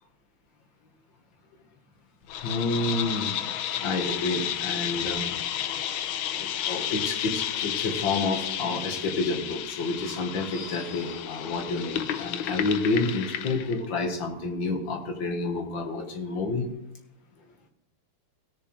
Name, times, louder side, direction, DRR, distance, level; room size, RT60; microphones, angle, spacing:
sound 1, 2.3-13.8, left 10 dB, 75° left, 1.4 m, -32 dB
voice 1, 2.3-3.4 3.8-5.3 5.6-5.7 6.4-16.7, left 3 dB, 60° left, 3 dB, 2.0 m, -29 dB
17.5 x 6.8 x 3.2 m, 0.85 s
omnidirectional pair, 2.4 m